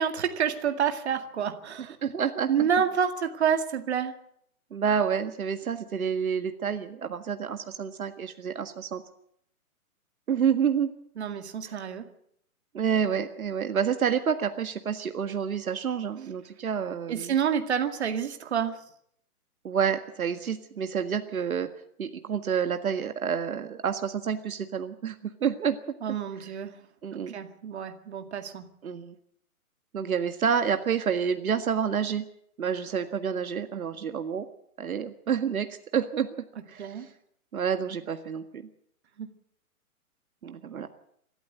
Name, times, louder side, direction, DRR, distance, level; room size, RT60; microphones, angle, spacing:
voice 1, 0.0-2.0 2.5-4.1 11.2-12.1 17.1-18.8 26.0-26.8 27.3-28.6 36.8-37.1 39.2-39.3, right 8 dB, 45° right, 6 dB, 2.2 m, -28 dB
voice 2, 2.0-2.7 4.7-9.0 10.3-10.9 11.7-11.8 12.7-17.3 19.6-21.7 22.0-25.2 25.4-25.8 27.0-27.3 28.8-29.2 29.9-32.2 32.6-34.5 34.8-35.7 35.9-36.3 36.7-36.9 37.5-38.6 40.4-40.9, right 7 dB, 70° right, 7 dB, 1.8 m, -28 dB
25.0 x 13.5 x 7.9 m, 0.70 s
hypercardioid pair, 175°, 44 cm